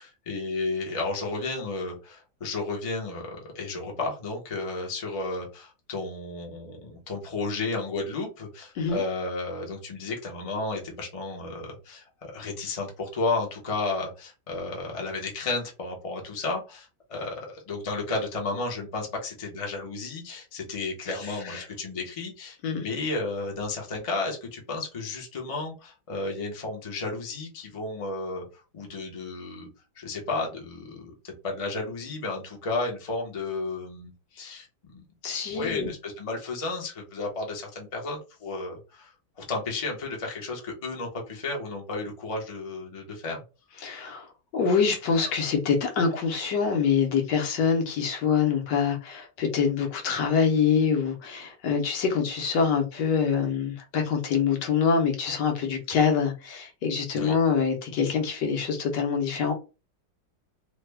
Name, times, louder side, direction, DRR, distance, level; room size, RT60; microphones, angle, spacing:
voice 1, 0.0-28.4 28.7-29.7 30.0-35.0 35.5-39.1 39.4-43.4 57.1-57.3, left 3 dB, 50° left, 0.3 m, -33 dB
voice 2, 21.1-21.7 22.6-22.9 35.2-35.9 43.8-44.3 44.5-59.5, left 6 dB, 70° left, 1.3 m, -25 dB
3.2 x 2.1 x 3.3 m
omnidirectional pair, 2.1 m